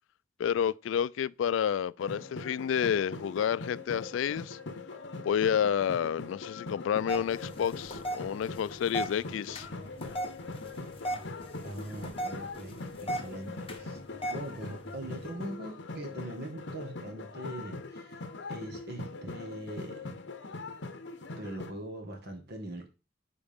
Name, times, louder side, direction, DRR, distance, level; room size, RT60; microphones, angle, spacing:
voice 1, 0.4-4.6 5.2-9.7, left 8 dB, 80° left, 0.3 m, -30 dB
sound 1, 2.0-21.7, left 3 dB, 65° left, 1.0 m, -42 dB
sound 2, 7.1-15.3, right 1 dB, 30° left, 1.3 m, -39 dB
voice 2, 11.6-14.0 14.3-18.2 18.5-20.2 21.4-22.9, right 1 dB, 60° right, 1.7 m, -41 dB
8.8 x 4.8 x 3.5 m
head